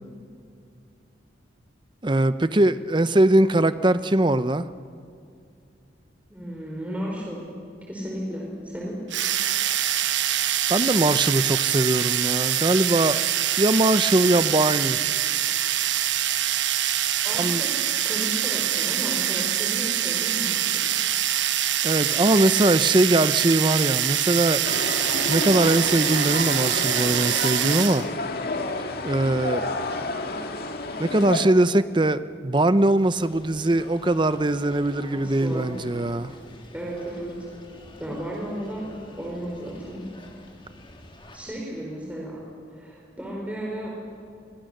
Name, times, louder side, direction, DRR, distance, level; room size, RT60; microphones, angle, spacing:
voice 1, 2.0-4.7 10.7-13.2 13.6-15.0 17.4-17.6 21.8-24.6 25.3-28.1 29.0-29.6 31.0-36.3, right 1 dB, 25° right, 0.7 m, -21 dB
voice 2, 6.3-7.4 7.8-9.0 17.2-17.7 18.0-20.7 35.1-35.7 36.7-37.3 38.0-38.9 39.2-40.0 41.3-42.4 42.7-43.9, equal, 10° right, 4.4 m, -34 dB
sound 1, 9.1-28.1, right 11 dB, 75° right, 1.1 m, -24 dB
sound 2, 24.6-31.5, left 2 dB, 55° left, 2.0 m, -30 dB
sound 3, 33.1-41.4, left 1 dB, 25° left, 3.1 m, -47 dB
29.0 x 24.0 x 6.7 m
head